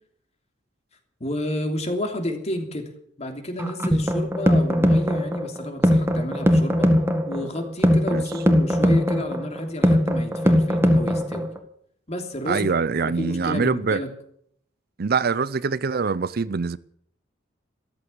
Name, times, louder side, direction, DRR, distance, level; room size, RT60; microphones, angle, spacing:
voice 1, 1.2-2.9 3.2-6.9 7.3-11.5 12.1-12.7 13.0-14.1, left 1 dB, 35° left, 3.0 m, -31 dB
sound 1, 3.6-11.6, equal, 15° right, 1.8 m, -20 dB
voice 2, 12.5-14.0 15.0-16.8, right 5 dB, 55° right, 0.6 m, -24 dB
14.5 x 14.0 x 7.1 m
head